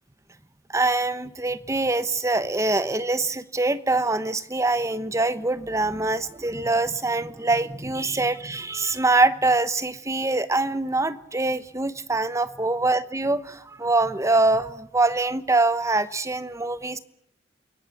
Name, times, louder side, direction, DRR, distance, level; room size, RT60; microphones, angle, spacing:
voice 1, 0.7-17.0, right 2 dB, 15° right, 14 dB, 0.9 m, -24 dB
29.5 x 17.5 x 7.2 m, 0.76 s
head